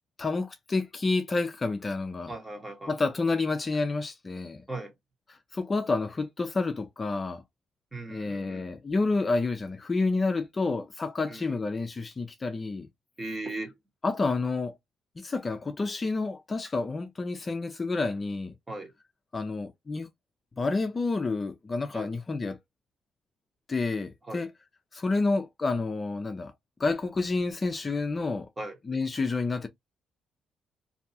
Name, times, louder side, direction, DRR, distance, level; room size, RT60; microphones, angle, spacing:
voice 1, 0.2-2.3 2.9-4.6 5.3-7.4 8.1-12.9 14.0-14.8 15.2-18.5 19.3-20.1 20.6-22.6 23.7-24.5 24.9-26.5 26.8-28.5 28.9-29.7, left 3 dB, 30° left, 0.4 m, -29 dB
voice 2, 2.3-2.9 4.7-4.9 7.9-8.7 11.3-11.6 13.2-13.7 18.7-18.9 21.9-22.1 24.3-24.4 28.6-28.8, right 2 dB, 25° right, 1.1 m, -38 dB
2.6 x 2.2 x 2.7 m
cardioid pair, 90°, 0 cm